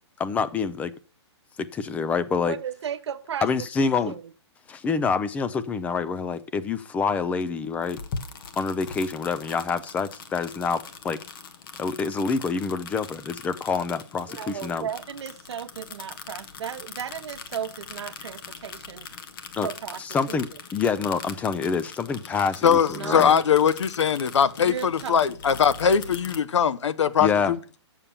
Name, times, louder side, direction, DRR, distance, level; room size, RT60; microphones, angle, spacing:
voice 1, 0.2-0.9 1.6-2.5 3.4-4.1 4.7-8.0 8.6-11.2 11.8-14.9 19.6-19.7 20.0-23.3 27.2-27.5, left 5 dB, 10° left, 0.4 m, -27 dB
voice 2, 2.4-3.5 3.8-4.3 14.3-19.1 19.6-20.0 20.3-20.6 22.9-23.5 24.6-25.2, right 8 dB, 70° right, 1.0 m, -35 dB
sound 1, 7.8-26.4, left 5 dB, 50° left, 1.4 m, -41 dB
voice 3, 22.6-27.6, left 7 dB, 80° left, 0.8 m, -21 dB
7.2 x 7.0 x 6.7 m
hypercardioid pair, 150°, 15 cm